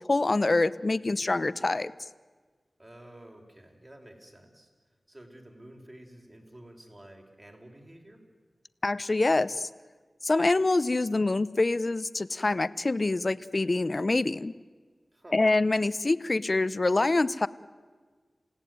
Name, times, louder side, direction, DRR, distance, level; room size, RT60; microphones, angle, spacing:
voice 1, 0.0-1.9 8.8-9.7 10.2-14.5 15.3-17.5, left 2 dB, 45° left, 17 dB, 0.8 m, -25 dB
voice 2, 2.8-4.7 5.1-8.2 15.1-15.4, right 1 dB, 30° right, 2 dB, 4.9 m, -50 dB
28.0 x 17.0 x 9.4 m, 1.5 s
wide cardioid pair, 65°, 0 cm